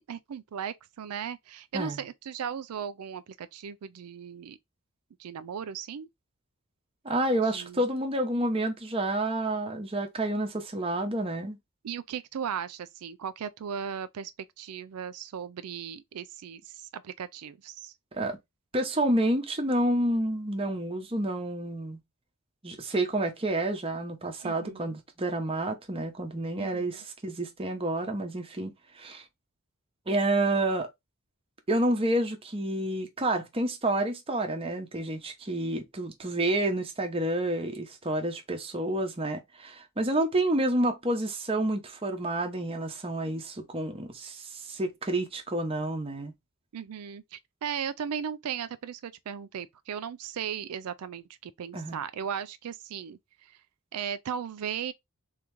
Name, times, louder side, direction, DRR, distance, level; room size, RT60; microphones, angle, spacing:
voice 1, 0.1-4.6 5.2-6.1 7.4-7.8 11.8-14.3 14.6-17.9 24.4-25.0 26.6-27.0 46.7-53.6 53.9-54.9, right 8 dB, 90° right, 0.4 m, -37 dB
voice 2, 7.0-11.6 18.1-18.4 18.7-22.0 22.6-29.2 30.1-30.9 31.7-46.3 51.7-52.0, right 1 dB, 25° right, 0.9 m, -29 dB
3.7 x 3.0 x 3.5 m
head